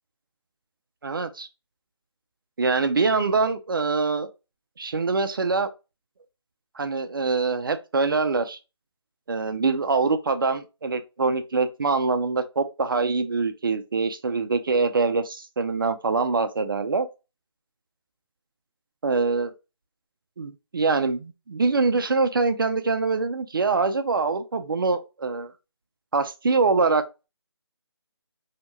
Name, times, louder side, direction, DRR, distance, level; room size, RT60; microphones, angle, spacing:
voice 1, 1.0-1.5 2.6-4.3 4.8-5.7 6.8-8.6 9.3-17.1 19.0-19.5 20.4-25.5 26.1-27.3, right 4 dB, 50° right, 0.4 m, -24 dB
2.8 x 2.1 x 2.9 m
figure-of-eight pair, 160°, 15 cm